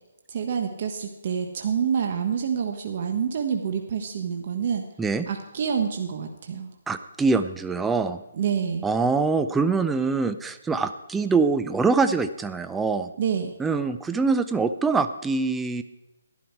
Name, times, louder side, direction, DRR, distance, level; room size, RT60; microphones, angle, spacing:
voice 1, 0.3-4.8 5.3-6.7 8.3-8.9 13.2-13.5, right 7 dB, 45° right, 3 dB, 1.3 m, -27 dB
voice 2, 6.9-8.2 8.8-13.1 13.6-15.8, right 4 dB, 5° right, 9 dB, 0.5 m, -24 dB
12.0 x 11.5 x 4.6 m, 0.96 s
hypercardioid pair, 165°, 0 cm